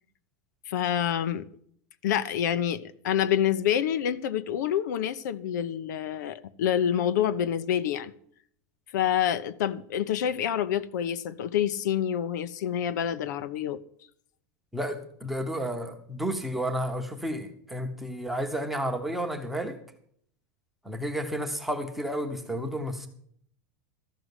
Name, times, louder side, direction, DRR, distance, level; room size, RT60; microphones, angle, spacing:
voice 1, 0.7-1.5 2.0-8.1 8.9-13.8, left 9 dB, 80° left, 0.8 m, -27 dB
voice 2, 14.7-19.8 20.8-23.1, equal, ahead, 0.9 m, -31 dB
13.5 x 6.2 x 8.0 m
supercardioid pair, 180°, 10 cm